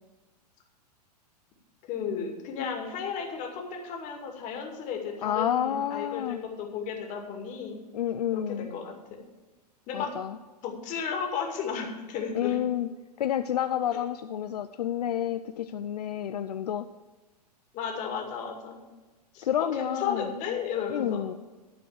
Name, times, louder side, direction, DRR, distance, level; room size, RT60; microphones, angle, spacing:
voice 1, 1.9-7.8 8.3-8.9 9.9-10.1 10.6-12.6 13.9-14.0 17.7-18.8 19.3-21.2, left 6 dB, 35° left, 2 dB, 2.3 m, -34 dB
voice 2, 5.2-6.4 7.9-8.7 9.9-10.4 12.3-12.9 13.2-16.9 19.4-20.3 20.9-21.3, left 10 dB, 70° left, 10 dB, 0.5 m, -29 dB
12.0 x 4.5 x 7.9 m, 1.2 s
figure-of-eight pair, 105°, 21 cm